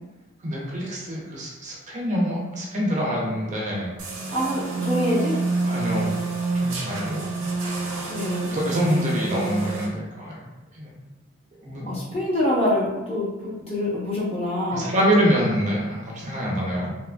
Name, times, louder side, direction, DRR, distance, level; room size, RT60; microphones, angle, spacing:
voice 1, 0.4-3.9 5.6-6.2 6.5-7.3 8.0-8.2 8.5-10.4 10.7-10.9 11.6-11.9 14.7-16.9, equal, 35° right, -3 dB, 0.5 m, -25 dB
sound 1, 4.0-9.9, right 3 dB, 75° right, 0.7 m, -27 dB
voice 2, 4.3-5.3 8.1-8.5 11.9-14.9, left 1 dB, 30° left, -6 dB, 0.8 m, -25 dB
2.8 x 2.3 x 2.2 m, 1.0 s
head